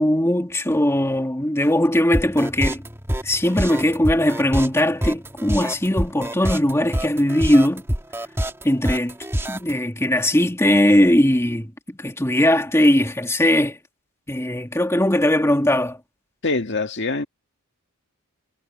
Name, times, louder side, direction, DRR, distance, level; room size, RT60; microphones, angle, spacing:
voice 1, 0.0-2.8 3.2-7.8 8.6-9.2 9.5-13.8 14.3-16.0, left 1 dB, 10° left, 2.1 m, -19 dB
sound 1, 2.1-9.7, equal, 10° right, 2.0 m, -26 dB
voice 2, 16.4-17.2, left 3 dB, 50° left, 1.9 m, -24 dB
head